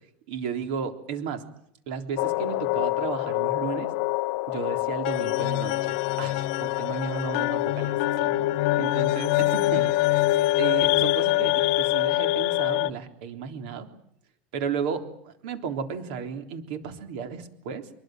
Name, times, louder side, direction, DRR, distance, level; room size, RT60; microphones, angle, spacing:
voice 1, 0.3-1.5 1.9-3.9 4.5-10.3 10.6-13.9 14.5-17.9, right 6 dB, 85° right, 7 dB, 3.6 m, -34 dB
sound 1, 2.2-12.9, left 17 dB, 75° left, 0.9 m, -25 dB
24.0 x 22.5 x 7.8 m, 0.71 s
cardioid pair, 155°, 5 cm